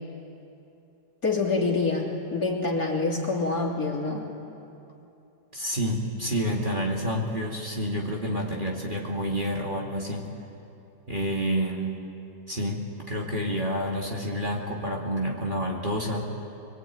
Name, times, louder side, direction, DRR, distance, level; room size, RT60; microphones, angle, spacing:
voice 1, 1.2-4.3, left 3 dB, 50° left, -2 dB, 3.6 m, -26 dB
voice 2, 5.5-10.3 11.1-12.0 12.5-16.3, equal, 25° right, -2 dB, 2.5 m, -29 dB
24.0 x 23.5 x 9.3 m, 2.8 s
omnidirectional pair, 2.1 m